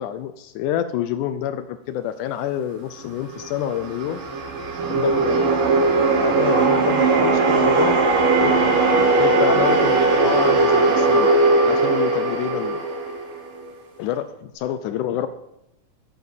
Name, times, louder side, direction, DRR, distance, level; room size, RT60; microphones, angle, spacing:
voice 1, 0.0-4.2 4.9-5.6 6.2-8.0 8.4-11.3 11.6-12.8 14.0-15.3, left 10 dB, 90° left, 11 dB, 1.7 m, -27 dB
sound 1, 3.3-13.7, right 3 dB, 65° right, 3.6 m, -19 dB
12.5 x 8.1 x 7.4 m, 0.86 s
omnidirectional pair, 4.4 m